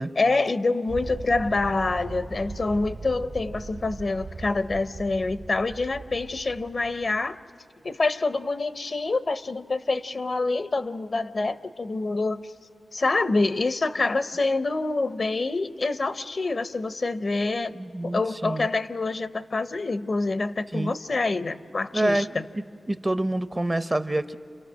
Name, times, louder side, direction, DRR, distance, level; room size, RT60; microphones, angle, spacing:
voice 1, 0.2-7.4 7.8-12.5 12.9-17.7 18.0-22.4, left 3 dB, 50° left, 0.7 m, -26 dB
sound 1, 0.9-7.3, right 3 dB, 85° right, 2.0 m, -39 dB
voice 2, 17.7-18.7 20.7-20.9 21.9-24.3, right 1 dB, 20° right, 0.6 m, -27 dB
30.0 x 29.0 x 6.3 m
wide cardioid pair, 85°, 0 cm